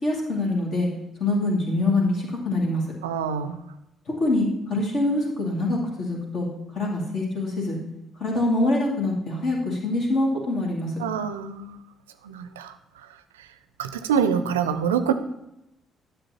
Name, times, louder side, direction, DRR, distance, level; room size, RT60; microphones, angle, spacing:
voice 1, 0.0-0.9 1.2-2.8 4.2-6.5 6.7-7.8 8.2-10.9, left 2 dB, 55° left, -1 dB, 2.3 m, -24 dB
voice 2, 3.0-3.6 11.0-11.8 12.2-12.7 13.4-13.5 13.8-15.1, right 7 dB, 80° right, 11 dB, 0.4 m, -25 dB
10.0 x 6.7 x 2.9 m, 0.86 s
figure-of-eight pair, 45°, 0 cm